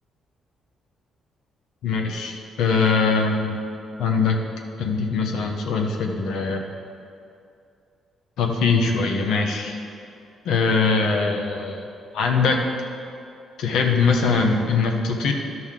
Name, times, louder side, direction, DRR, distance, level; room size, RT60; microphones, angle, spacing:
voice 1, 1.8-3.6 4.0-4.4 4.8-6.6 8.4-9.8 10.4-11.8 12.1-12.6 13.6-15.3, left 4 dB, 80° left, 2 dB, 1.0 m, -22 dB
11.5 x 6.2 x 3.7 m, 2.5 s
cardioid pair, 90°, 0 cm